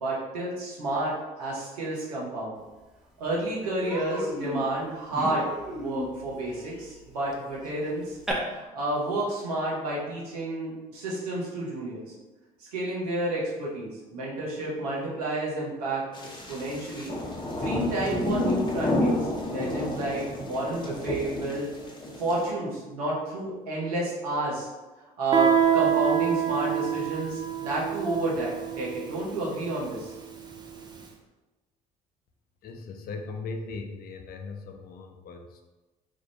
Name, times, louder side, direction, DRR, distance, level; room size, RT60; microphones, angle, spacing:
voice 1, 0.0-2.6 3.2-5.5 5.7-12.1 12.7-16.0 16.5-17.1 17.6-21.7 22.2-24.7 25.2-30.1, right 2 dB, 85° right, -5 dB, 1.0 m, -30 dB
Human voice, 2.8-2.9 3.2-3.4 3.8-8.3, equal, 5° right, 0.9 m, -37 dB
sound 1, 16.1-22.5, left 1 dB, 25° left, 0.8 m, -30 dB
Guitar, 25.3-30.8, right 8 dB, 20° right, 0.6 m, -26 dB
voice 2, 32.6-35.7, left 3 dB, 55° left, 4 dB, 0.6 m, -38 dB
3.5 x 2.5 x 3.3 m, 1.1 s
hypercardioid pair, 60°, 19 cm